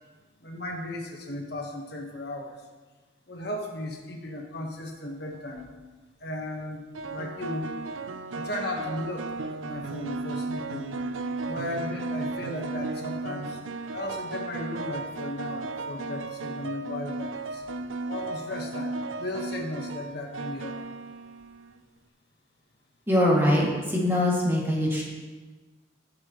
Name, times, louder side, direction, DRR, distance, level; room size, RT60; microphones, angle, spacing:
voice 1, 0.4-2.6 3.3-5.7 6.2-6.8 7.1-7.7 8.3-10.9 11.4-13.6 13.9-17.6 18.1-20.8, left 1 dB, 55° left, 1 dB, 1.3 m, -35 dB
sound 1, 5.4-5.7 6.9-21.8, right 3 dB, 85° right, 0.5 m, -35 dB
voice 2, 23.1-25.1, left 1 dB, 10° right, -5 dB, 2.3 m, -23 dB
19.0 x 7.6 x 3.1 m, 1.3 s
head